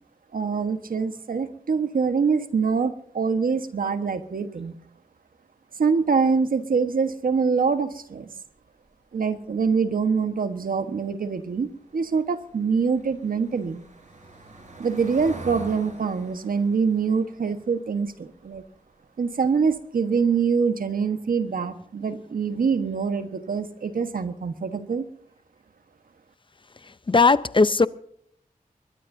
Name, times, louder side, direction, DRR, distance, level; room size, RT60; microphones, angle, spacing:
voice 1, 0.3-4.7 5.8-8.3 9.1-11.7 11.9-13.8 14.8-18.6 19.2-25.0, right 5 dB, 85° right, 9 dB, 1.4 m, -24 dB
Car passing by / Engine, 12.0-18.9 19.3-19.5 19.8-19.9, right 2 dB, 60° right, 5.2 m, -44 dB
voice 2, 27.1-27.9, left 4 dB, 35° left, 16 dB, 0.6 m, -17 dB
22.5 x 21.5 x 2.8 m, 0.68 s
wide cardioid pair, 95°, 14 cm